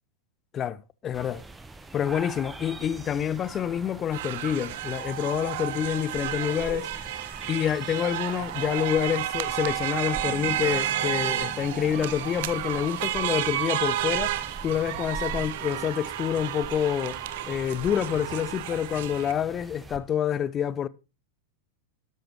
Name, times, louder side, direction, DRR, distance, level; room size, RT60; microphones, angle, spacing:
voice 1, 0.5-1.4 1.9-7.1 7.5-14.3 14.6-17.2 17.5-20.9, left 9 dB, 25° left, 0.5 m, -27 dB
sound 1, 1.1-20.0, right 3 dB, 10° right, 1.1 m, -44 dB
sound 2, 4.1-19.3, right 13 dB, 55° right, 0.8 m, -31 dB
sound 3, 10.2-14.2, right 5 dB, 35° right, 2.3 m, -45 dB
13.0 x 12.0 x 3.0 m
figure-of-eight pair, 90°, 0 cm